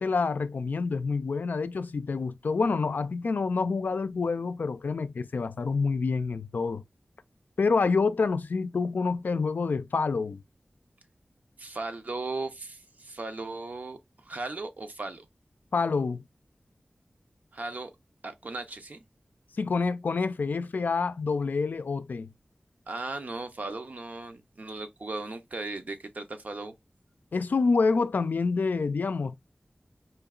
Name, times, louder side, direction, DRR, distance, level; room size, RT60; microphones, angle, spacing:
voice 1, 0.0-6.8 7.6-10.4 15.7-16.2 19.6-22.3 27.3-29.4, left 4 dB, 85° left, 0.3 m, -27 dB
voice 2, 11.6-15.3 17.5-17.9 18.2-19.0 22.9-26.8, right 3 dB, 60° right, 0.6 m, -37 dB
4.4 x 2.8 x 2.3 m
wide cardioid pair, 75°, 3 cm